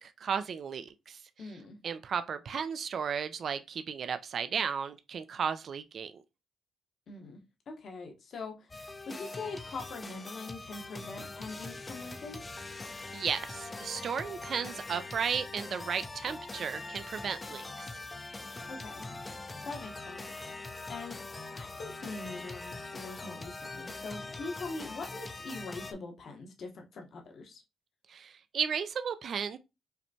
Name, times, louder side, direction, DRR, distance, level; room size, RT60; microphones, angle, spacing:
voice 1, 0.0-1.2 1.8-6.2 13.1-17.9 28.1-29.6, right 7 dB, 55° right, 0.4 m, -34 dB
voice 2, 1.4-1.8 7.1-8.8 9.1-12.4 18.7-19.2 19.6-20.6 20.9-21.2 21.5-27.6, left 3 dB, 55° left, 1.0 m, -43 dB
sound 1, 8.7-25.9, left 3 dB, 20° left, 0.5 m, -43 dB
5.6 x 2.2 x 2.7 m
cardioid pair, 90°, 0 cm